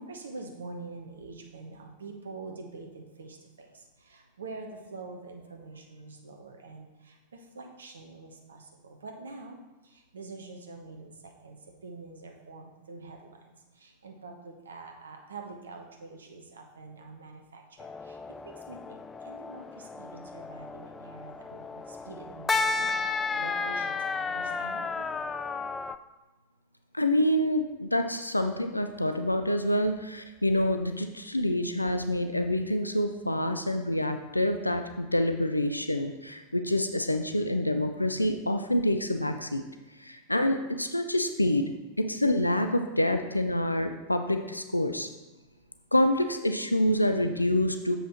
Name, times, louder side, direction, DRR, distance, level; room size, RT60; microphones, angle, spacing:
voice 1, 0.0-3.4 4.1-6.9 7.5-9.6 10.1-11.1 11.4-11.6 11.8-13.4 13.8-17.6 18.1-18.2 18.4-22.9 23.3-24.9, right 3 dB, 70° right, 3 dB, 1.0 m, -45 dB
sound 1, 17.8-26.0, left 4 dB, 15° left, 0.3 m, -33 dB
voice 2, 26.9-39.6 40.0-41.6 42.0-45.1 45.9-47.9, left 1 dB, 85° left, 7 dB, 0.4 m, -27 dB
7.5 x 5.5 x 4.2 m, 1.1 s
figure-of-eight pair, 90°, 0 cm